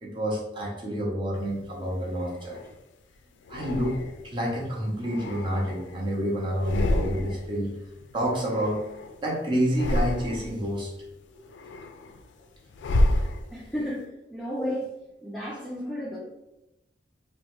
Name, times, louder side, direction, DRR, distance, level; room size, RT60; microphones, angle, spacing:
voice 1, 0.0-2.6 3.5-4.0 4.2-7.7 8.1-8.8 9.2-10.9 11.3-11.8, equal, 30° right, -3 dB, 0.7 m, -29 dB
sound 1, 1.6-2.8 3.5-4.4 4.9-6.1 6.5-7.6 7.8-9.2 9.6-10.7 11.1-13.9, left 1 dB, 90° left, 0.3 m, -30 dB
voice 2, 13.5-14.9 15.2-16.2, equal, ahead, -6 dB, 0.3 m, -33 dB
2.9 x 2.1 x 3.0 m, 0.91 s
head